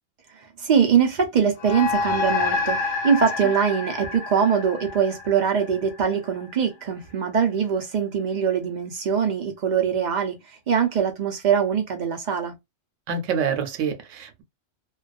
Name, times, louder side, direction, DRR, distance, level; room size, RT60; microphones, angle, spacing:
voice 1, 0.4-12.5, right 7 dB, 65° right, 0.4 m, -23 dB
sound 1, 1.6-6.3, left 4 dB, 50° left, 0.7 m, -28 dB
voice 2, 13.1-14.4, right 6 dB, 85° right, 1.0 m, -27 dB
2.3 x 2.2 x 2.3 m
omnidirectional pair, 1.3 m